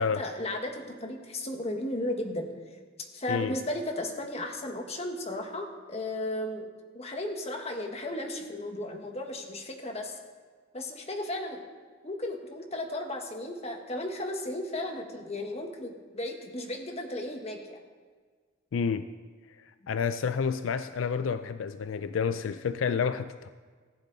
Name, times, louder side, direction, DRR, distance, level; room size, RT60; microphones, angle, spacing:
voice 1, 0.0-2.5 3.1-6.7 6.9-10.2 10.7-11.6 12.0-17.8, left 1 dB, 35° left, 3 dB, 1.4 m, -35 dB
voice 2, 18.7-19.0 19.9-23.5, left 6 dB, 85° left, 12 dB, 0.4 m, -29 dB
15.0 x 9.8 x 4.0 m, 1.6 s
head